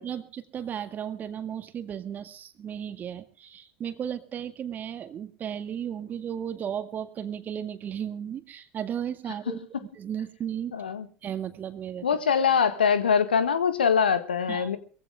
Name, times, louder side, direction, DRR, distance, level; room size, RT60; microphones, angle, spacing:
voice 1, 0.0-9.6 10.0-10.7 11.2-12.1 14.5-14.7, right 9 dB, 35° right, 10 dB, 1.8 m, -35 dB
voice 2, 10.7-11.1 12.0-14.8, left 6 dB, 75° left, 12 dB, 1.5 m, -23 dB
21.5 x 15.5 x 3.5 m, 0.40 s
figure-of-eight pair, 70°, 5 cm